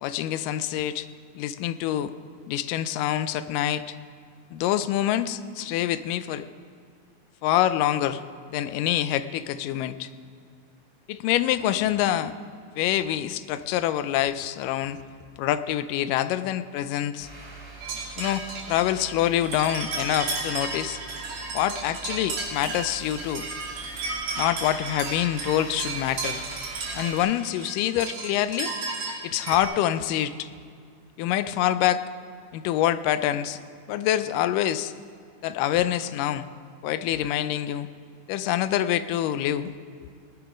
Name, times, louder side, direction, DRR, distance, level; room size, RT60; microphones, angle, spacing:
voice 1, 0.0-1.1 1.4-2.1 2.5-3.8 4.5-6.5 7.4-8.2 8.5-10.1 11.1-12.3 12.8-15.0 15.4-17.3 18.2-21.0 21.5-23.5 24.4-26.4 26.9-28.7 29.2-30.5 31.2-32.0 32.5-33.6 33.9-34.9 35.4-36.5 36.8-37.9 38.3-39.7, left 12 dB, 90° left, 13 dB, 2.2 m, -26 dB
sound 1, 17.2-27.2, right 3 dB, 10° right, 2.4 m, -44 dB
sound 2, 17.8-29.6, right 3 dB, 75° right, 3.9 m, -34 dB
19.0 x 9.8 x 5.1 m, 2.2 s
omnidirectional pair, 3.7 m